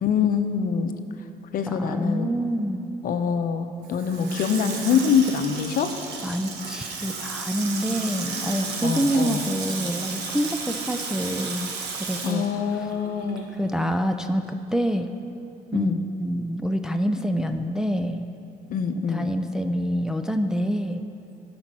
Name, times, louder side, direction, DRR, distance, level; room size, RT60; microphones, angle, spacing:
voice 1, 0.0-1.0 1.5-2.3 3.0-5.9 8.8-9.4 12.2-13.6 15.7-16.0 18.7-19.3, left 7 dB, 55° left, 7 dB, 0.8 m, -24 dB
voice 2, 1.7-2.9 6.2-11.7 12.0-12.5 13.6-14.4 14.7-15.1 15.7-15.9 16.2-18.3 19.1-21.0, equal, 5° right, 5 dB, 0.4 m, -26 dB
Water tap faucet / Sink (filling or washing), 3.8-13.5 13.9-14.0, right 4 dB, 85° right, 1.3 m, -33 dB
13.0 x 5.3 x 6.1 m, 2.8 s
cardioid pair, 110°, 17 cm